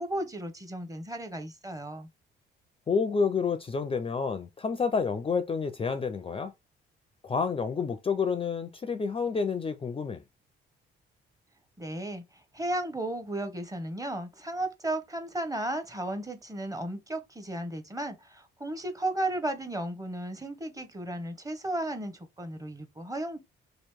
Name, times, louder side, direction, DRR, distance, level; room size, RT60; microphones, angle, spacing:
voice 1, 0.0-2.1 11.8-23.4, right 1 dB, 15° right, 0.8 m, -34 dB
voice 2, 2.9-6.5 7.2-10.2, left 5 dB, 25° left, 0.4 m, -29 dB
3.0 x 2.5 x 3.5 m
cardioid pair, 80°, 20 cm